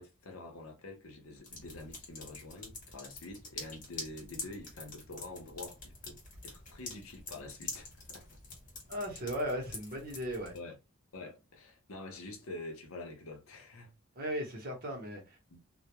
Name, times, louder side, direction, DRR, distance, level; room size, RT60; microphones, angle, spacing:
voice 1, 0.0-8.4 10.5-10.8 11.1-13.9 15.5-15.6, left 2 dB, 75° left, 0.7 m, -47 dB
sound 1, 1.4-10.6, left 3 dB, 35° left, 0.8 m, -46 dB
voice 2, 8.9-10.5 14.1-15.4, equal, 45° right, 0.8 m, -37 dB
2.2 x 2.1 x 2.8 m
head